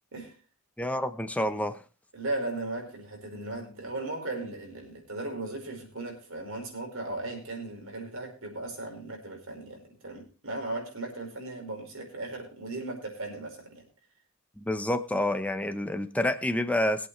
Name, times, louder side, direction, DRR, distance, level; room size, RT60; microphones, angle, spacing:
voice 1, 0.8-1.8 14.6-17.1, left 1 dB, 5° left, 0.9 m, -28 dB
voice 2, 2.1-13.8, right 2 dB, 75° right, 4.9 m, -37 dB
21.5 x 8.3 x 3.2 m
head